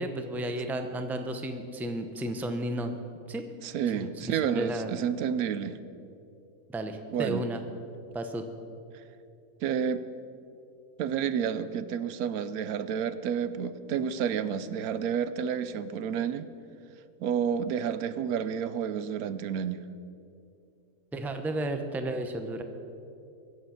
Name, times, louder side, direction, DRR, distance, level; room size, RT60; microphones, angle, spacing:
voice 1, 0.0-3.0 3.3-3.4 4.0-4.9 6.7-7.6 8.1-8.4 21.1-22.6, right 1 dB, ahead, 6 dB, 0.6 m, -33 dB
voice 2, 3.6-5.8 7.1-7.4 9.6-10.0 11.0-16.5 17.2-19.8, right 8 dB, 85° right, 13 dB, 1.1 m, -30 dB
22.5 x 8.0 x 5.8 m, 2.7 s
omnidirectional pair, 1.5 m